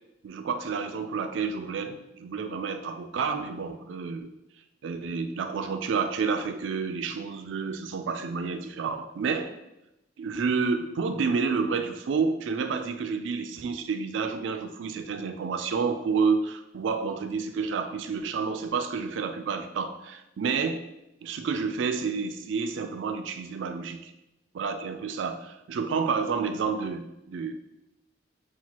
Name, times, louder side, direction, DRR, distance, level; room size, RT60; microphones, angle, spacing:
voice 1, 0.2-4.3 4.8-9.5 10.2-20.8 21.2-24.1 24.5-27.5, right 5 dB, 75° right, 7 dB, 0.3 m, -29 dB
5.8 x 2.3 x 2.9 m, 0.90 s
head